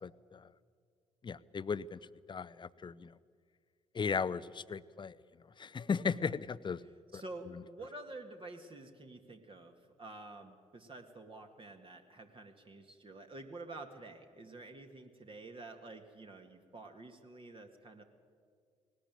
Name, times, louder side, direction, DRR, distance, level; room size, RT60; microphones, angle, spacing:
voice 1, 0.0-0.5 1.2-2.0 2.3-3.1 3.9-5.2 5.6-6.8 7.1-7.2, left 5 dB, 30° left, 18 dB, 0.7 m, -36 dB
voice 2, 6.8-18.0, right 2 dB, 30° right, 4 dB, 2.0 m, -49 dB
19.5 x 19.0 x 9.3 m, 2.1 s
figure-of-eight pair, 45°, 16 cm